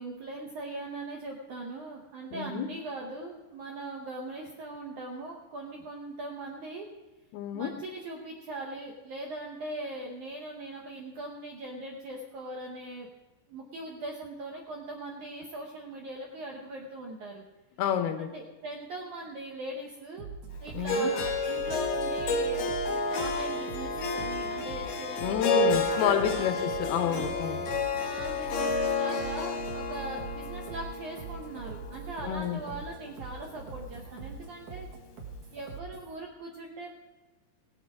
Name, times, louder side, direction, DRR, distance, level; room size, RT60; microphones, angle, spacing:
voice 1, 0.0-6.9 7.5-13.1 13.5-17.4 18.2-20.3 20.6-26.5 27.0-27.3 28.0-34.9 35.5-36.9, right 2 dB, 75° right, 0 dB, 1.8 m, -40 dB
voice 2, 2.3-2.7 7.3-7.7 17.8-18.3 20.7-21.1 25.2-27.6 32.2-32.6, left 9 dB, 85° left, 8 dB, 2.6 m, -29 dB
sound 1, 20.2-36.2, right 4 dB, 55° right, 2.8 m, -43 dB
Harp, 20.9-33.0, left 2 dB, 65° left, 1.9 m, -31 dB
17.5 x 8.4 x 4.9 m, 1.1 s
omnidirectional pair, 4.8 m